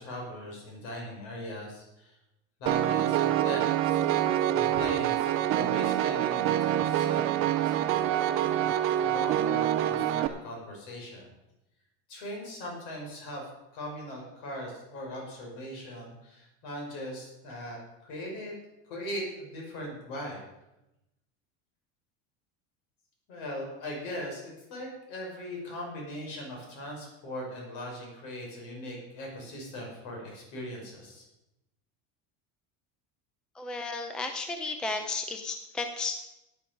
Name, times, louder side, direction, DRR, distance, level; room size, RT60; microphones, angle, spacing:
voice 1, 0.0-2.2 2.6-4.0 4.5-11.3 12.1-18.5 18.9-20.4 23.3-31.2, equal, 60° left, -1 dB, 5.8 m, -40 dB
Piano, 2.7-10.3, right 11 dB, 35° right, 0.6 m, -26 dB
voice 2, 33.6-36.2, left 3 dB, ahead, 6 dB, 0.5 m, -33 dB
13.5 x 9.5 x 5.3 m, 0.93 s
cardioid pair, 165°, 39 cm